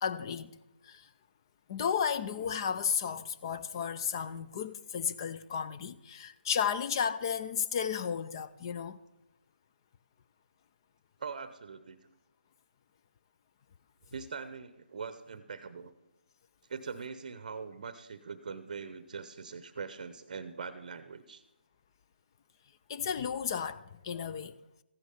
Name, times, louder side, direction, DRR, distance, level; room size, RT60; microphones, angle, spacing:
voice 1, 0.0-1.1 1.7-9.0 22.9-24.5, left 7 dB, 25° left, 0.5 m, -33 dB
voice 2, 11.2-12.1 14.1-15.9 16.7-21.4, right 5 dB, 45° right, 0.7 m, -42 dB
14.5 x 9.7 x 5.4 m
figure-of-eight pair, 160°, 6 cm